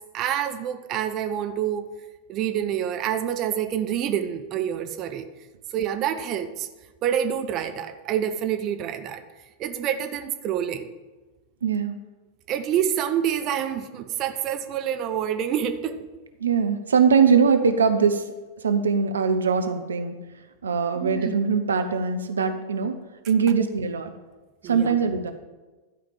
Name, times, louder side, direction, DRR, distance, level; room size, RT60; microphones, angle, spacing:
voice 1, 0.1-1.9 2.3-5.3 5.7-6.7 7.0-9.2 9.6-10.9 12.5-16.0 21.0-21.3 24.6-25.0, right 9 dB, 35° right, 8 dB, 0.8 m, -27 dB
voice 2, 11.6-12.0 16.4-18.3 18.6-20.1 20.6-23.0 23.3-24.1 24.6-25.3, right 6 dB, 70° right, 7 dB, 0.7 m, -22 dB
12.0 x 5.1 x 7.3 m, 1.2 s
figure-of-eight pair, 90°, 0 cm